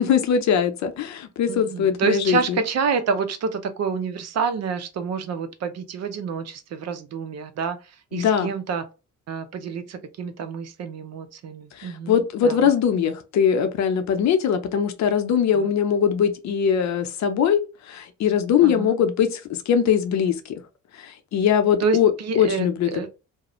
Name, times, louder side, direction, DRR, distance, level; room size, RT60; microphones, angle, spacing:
voice 1, 0.0-2.6 8.1-8.5 11.8-20.5 20.9-22.1 22.4-23.1, left 8 dB, 65° left, 0.6 m, -21 dB
voice 2, 1.5-8.8 9.3-12.7 15.5-15.7 18.6-18.9 21.8-23.1, right 5 dB, 60° right, 0.6 m, -28 dB
2.4 x 2.0 x 2.9 m
cardioid pair, 90°, 30 cm